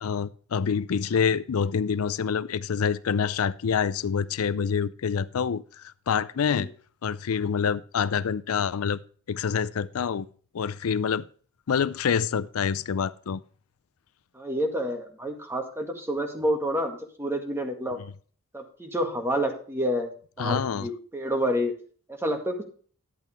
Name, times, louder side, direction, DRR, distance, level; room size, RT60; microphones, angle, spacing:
voice 1, 0.0-6.7 7.0-9.0 9.3-10.3 10.5-11.2 11.7-13.4 18.0-18.1 20.4-20.9, left 6 dB, 80° left, 0.5 m, -26 dB
voice 2, 14.3-18.0 18.5-20.1 20.4-21.7 22.2-22.6, equal, 10° right, 1.9 m, -28 dB
11.0 x 8.3 x 3.3 m
head